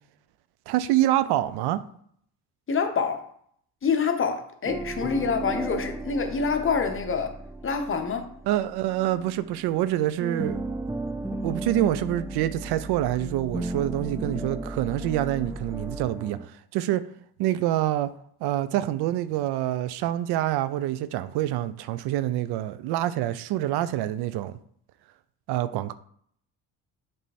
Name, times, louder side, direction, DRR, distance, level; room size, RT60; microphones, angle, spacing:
voice 1, 0.7-1.8 8.5-10.6 11.4-17.0 17.4-18.1 18.4-24.6 25.5-25.9, right 13 dB, 80° right, 0.6 m, -26 dB
voice 2, 2.7-3.2 3.8-7.4 7.6-8.3, left 5 dB, 30° left, 1.0 m, -26 dB
sound 1, 4.6-9.9 10.2-16.5, right 2 dB, 10° right, 0.4 m, -35 dB
7.4 x 3.4 x 4.2 m
cardioid pair, 100°, 39 cm